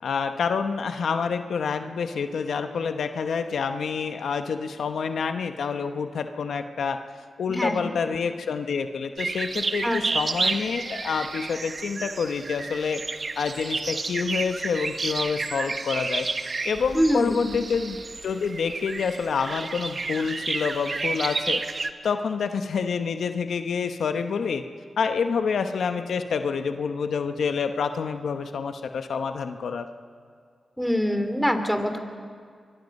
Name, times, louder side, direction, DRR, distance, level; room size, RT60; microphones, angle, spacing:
voice 1, 0.0-7.0 7.4-13.0 13.4-16.3 16.6-18.0 18.2-21.6 22.0-24.6 25.0-29.9, left 5 dB, 80° left, 7 dB, 0.9 m, -27 dB
voice 2, 7.5-7.8 9.8-10.0 10.4-10.6 16.9-17.5 30.8-32.0, equal, ahead, 7 dB, 2.9 m, -24 dB
sound 1, 9.2-21.9, right 3 dB, 50° right, 1.2 m, -31 dB
24.0 x 23.5 x 5.4 m, 2.1 s
cardioid pair, 45°, 0 cm